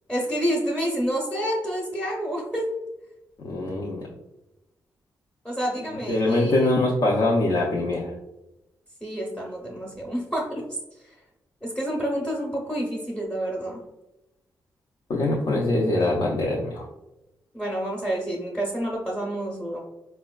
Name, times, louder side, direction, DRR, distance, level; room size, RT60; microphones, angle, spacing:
voice 1, 0.1-2.7 5.4-6.6 9.0-10.6 11.6-13.8 17.5-19.8, equal, 10° left, -3 dB, 0.7 m, -28 dB
voice 2, 3.4-4.0 6.1-8.1 15.1-16.9, left 2 dB, 65° left, -4 dB, 0.6 m, -23 dB
4.1 x 2.2 x 2.2 m, 0.94 s
cardioid pair, 100°, 7 cm